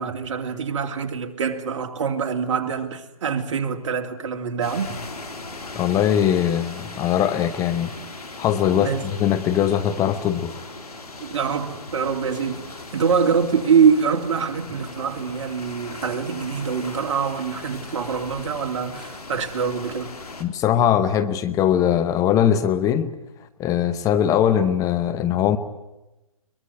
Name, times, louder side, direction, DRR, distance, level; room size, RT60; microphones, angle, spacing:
voice 1, 0.0-5.0 8.7-9.0 11.2-12.6 12.9-20.1, right 6 dB, 50° right, 2.9 m, -24 dB
sound 1, 4.6-20.4, left 3 dB, 90° left, 3.5 m, -38 dB
voice 2, 5.7-7.9 8.4-10.6 20.4-23.1 23.6-25.6, left 9 dB, 20° left, 0.9 m, -21 dB
23.0 x 21.0 x 9.9 m
hypercardioid pair, 140°, 19 cm